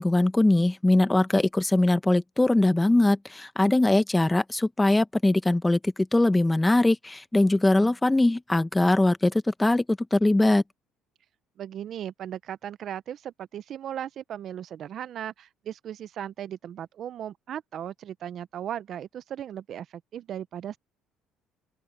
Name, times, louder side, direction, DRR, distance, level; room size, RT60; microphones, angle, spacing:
voice 1, 0.0-10.6, left 2 dB, 10° left, 1.2 m, -21 dB
voice 2, 11.6-19.9 20.1-20.8, right 10 dB, 55° right, 0.7 m, -37 dB
open air
supercardioid pair, 90°, 0 cm